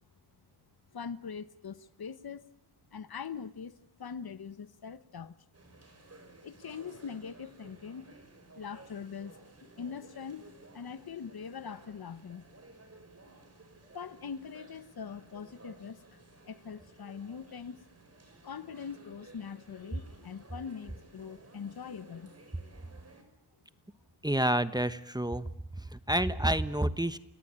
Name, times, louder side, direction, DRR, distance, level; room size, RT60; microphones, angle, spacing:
voice 1, 0.9-2.5 2.9-5.4 6.4-8.1 8.6-12.4 13.9-16.2 16.5-17.9 18.4-22.3, left 6 dB, 60° left, 1.3 m, -42 dB
sound 1, 5.5-23.2, right 2 dB, 35° right, 5.5 m, -56 dB
voice 2, 24.2-25.5 25.9-27.2, right 1 dB, 10° right, 1.1 m, -29 dB
29.0 x 18.0 x 8.9 m
cardioid pair, 75°, 41 cm